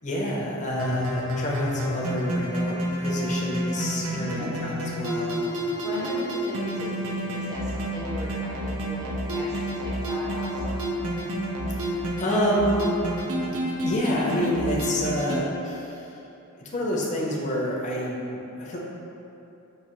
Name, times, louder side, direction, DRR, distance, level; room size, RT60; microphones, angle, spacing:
voice 1, 0.0-5.5 11.8-12.8 13.8-16.1 16.6-18.8, equal, 35° left, -4 dB, 0.6 m, -28 dB
sound 1, 0.7-15.4, equal, 70° right, 0.6 m, -29 dB
voice 2, 4.1-4.5 5.8-10.8, equal, 20° right, -7 dB, 0.6 m, -37 dB
5.5 x 2.7 x 3.0 m, 2.8 s
head